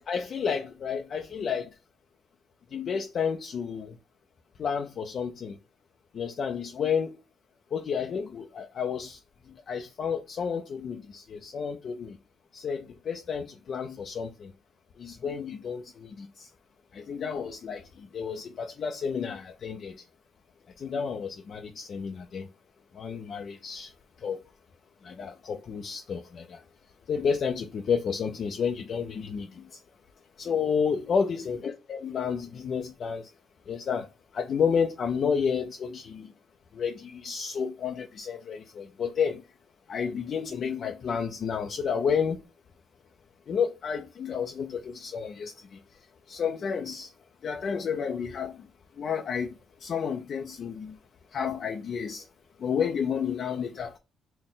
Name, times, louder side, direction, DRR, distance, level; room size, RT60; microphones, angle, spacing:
voice 1, 0.0-1.7 2.7-3.9 4.6-5.5 6.1-7.2 7.7-9.2 9.7-12.2 12.5-14.5 15.0-16.5 16.9-19.9 20.8-22.5 23.0-23.9 24.2-24.4 25.0-26.6 27.1-29.6 30.4-33.2 33.7-34.1 34.3-36.3 36.7-39.4 39.9-42.4 43.5-45.8 46.3-47.1 47.4-48.6 49.0-49.5 49.8-51.0 51.3-52.2 52.6-54.0, left 6 dB, 55° left, 0.4 m, -31 dB
4.0 x 2.1 x 3.8 m
cardioid pair, 90°, 0 cm